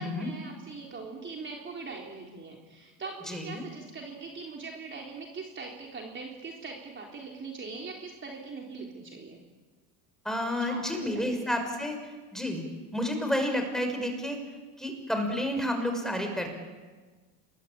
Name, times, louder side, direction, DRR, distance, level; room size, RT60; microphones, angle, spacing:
voice 1, 0.0-9.4 10.6-11.5, right 4 dB, 25° right, 0 dB, 3.9 m, -41 dB
voice 2, 3.3-3.6 10.2-12.0 12.3-12.6 12.9-14.4 14.8-16.5, left 1 dB, ahead, 5 dB, 6.1 m, -30 dB
28.5 x 22.0 x 8.9 m, 1.3 s
cardioid pair, 125°, 45 cm